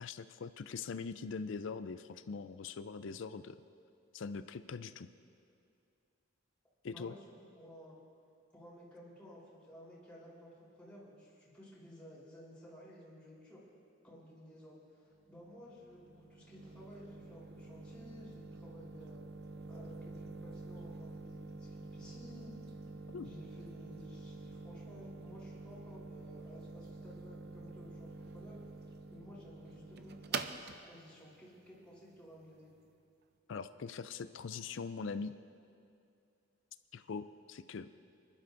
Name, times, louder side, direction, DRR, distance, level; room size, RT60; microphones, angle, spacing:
voice 1, 0.0-3.6 4.1-5.1 6.8-7.1 23.1-23.3 33.5-35.3 36.9-37.9, left 5 dB, 70° left, 12 dB, 0.4 m, -42 dB
voice 2, 7.5-8.0 8.5-13.6 14.0-19.2 19.7-22.6 23.2-32.7, equal, 5° left, -8 dB, 3.7 m, -55 dB
sound 1, 15.2-32.9, right 4 dB, 55° right, 0.5 m, -47 dB
27.5 x 11.5 x 2.6 m, 2.5 s
head